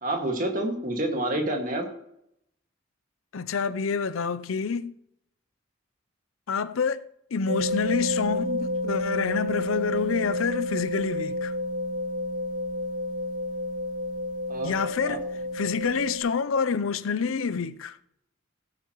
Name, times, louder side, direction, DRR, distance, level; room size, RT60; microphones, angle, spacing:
voice 1, 0.0-1.9 14.5-14.7 15.0-15.2, right 1 dB, 40° right, 1.9 m, -28 dB
voice 2, 3.3-5.0 6.5-11.5 14.6-15.3 15.5-18.0, left 5 dB, 90° left, 0.6 m, -28 dB
sound 1, 7.5-16.2, left 1 dB, 80° right, 3.0 m, -30 dB
16.5 x 8.8 x 3.1 m
head